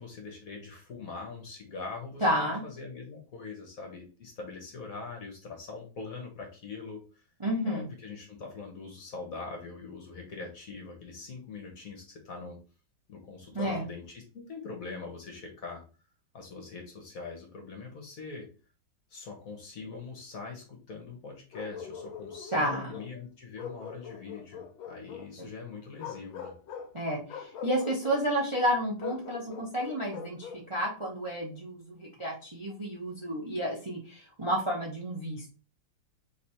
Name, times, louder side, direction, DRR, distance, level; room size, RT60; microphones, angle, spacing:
voice 1, 0.0-7.2 7.6-12.6 13.1-15.8 16.3-18.5 19.1-26.5, left 4 dB, 55° left, 2 dB, 1.1 m, -43 dB
voice 2, 2.2-2.6 7.4-7.8 13.5-13.8 22.5-22.9 26.9-35.5, equal, 25° right, -3 dB, 0.6 m, -31 dB
Bark, 21.5-23.1 23.6-25.3 25.9-26.9 27.3-28.2 29.0-30.7, left 7 dB, 90° left, 1.6 m, -42 dB
3.3 x 3.3 x 4.2 m, 0.35 s
omnidirectional pair, 2.2 m